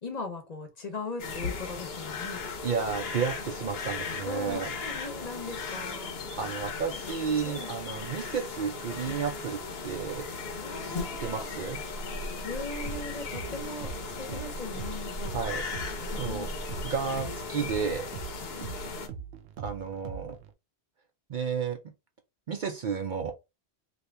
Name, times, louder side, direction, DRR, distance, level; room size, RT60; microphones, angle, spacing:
voice 1, 0.0-2.4 4.2-6.1 6.9-7.1 7.4-7.7 10.6-11.5 12.4-13.9 14.2-15.2 16.3-16.6 18.5-18.7, left 3 dB, 45° left, 0.8 m, -39 dB
sound 1, 1.2-19.1, left 4 dB, 70° left, 0.9 m, -37 dB
voice 2, 2.6-4.7 6.4-10.3 10.8-10.9 11.2-11.8 15.3-15.7 16.2-16.5 16.8-18.1 19.6-20.4 21.3-21.8 22.5-23.3, right 6 dB, 60° right, 0.6 m, -32 dB
sound 2, 12.9-20.5, right 7 dB, 85° right, 0.8 m, -42 dB
2.8 x 2.5 x 3.2 m
omnidirectional pair, 1.1 m